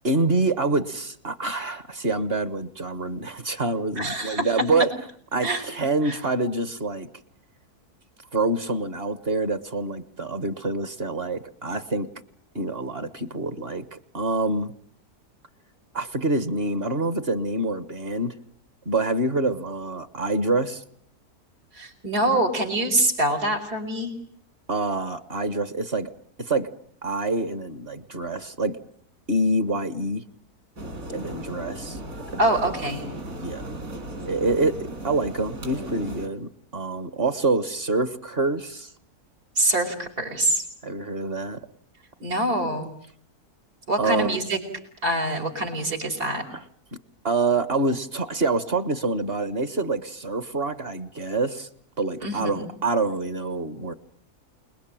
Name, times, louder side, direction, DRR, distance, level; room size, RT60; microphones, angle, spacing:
voice 1, 0.0-4.9 5.3-7.1 8.3-12.1 12.5-14.7 15.9-18.3 18.8-20.8 24.7-26.1 26.4-26.7 27.0-28.8 29.3-30.2 31.1-32.0 33.4-33.7 34.2-38.9 40.8-41.6 44.0-44.4 47.2-51.7 52.0-53.9, right 2 dB, 40° right, 13 dB, 1.5 m, -26 dB
voice 2, 4.0-4.5 5.4-5.6 6.0-6.2 21.7-24.1 32.4-33.0 39.6-40.6 42.2-42.9 43.9-44.6 45.0-46.4 52.2-52.7, right 1 dB, 75° right, 1 dB, 6.0 m, -25 dB
sound 1, 30.8-36.3, right 1 dB, 55° right, 4.3 m, -36 dB
29.0 x 21.0 x 9.0 m, 0.62 s
omnidirectional pair, 1.7 m